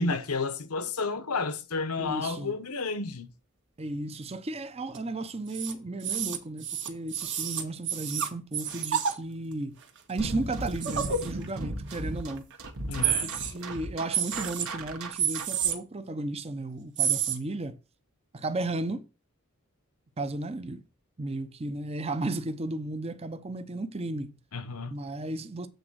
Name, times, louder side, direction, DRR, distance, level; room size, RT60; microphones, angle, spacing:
voice 1, 0.0-3.3 12.9-13.3 24.5-24.9, left 4 dB, 85° left, 1.0 m, -31 dB
voice 2, 2.0-2.6 3.8-9.8 10.1-12.5 13.0-17.8 18.3-19.1 20.2-20.8 21.2-24.4 24.9-25.7, right 2 dB, 25° right, 0.6 m, -34 dB
sound 1, 4.9-5.0 5.5-5.7 6.0-9.1 9.8-10.0 10.3-10.4 10.7-11.5 11.9-12.0 12.4-12.7 13.0-13.8 14.1-14.7 15.1-15.7 17.0-17.4, right 8 dB, 55° right, 1.3 m, -29 dB
sound 2, 10.2-15.7, right 2 dB, 70° right, 1.3 m, -37 dB
8.0 x 3.9 x 6.2 m
head